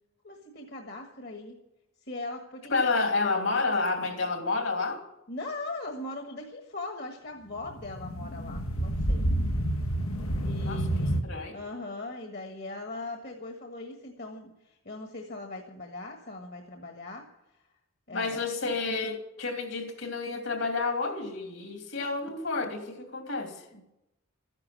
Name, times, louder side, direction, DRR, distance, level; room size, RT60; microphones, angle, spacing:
voice 1, 0.2-1.6 2.1-3.0 5.3-9.2 10.4-11.2 11.5-17.3 18.1-18.4 23.7-23.8, left 2 dB, 50° left, 1.5 m, -40 dB
voice 2, 2.7-5.0 10.6-11.6 18.1-23.6, left 3 dB, 70° left, 2.8 m, -30 dB
sound 1, 7.5-11.2, right 1 dB, 90° left, 1.5 m, -29 dB
13.5 x 10.5 x 7.6 m
head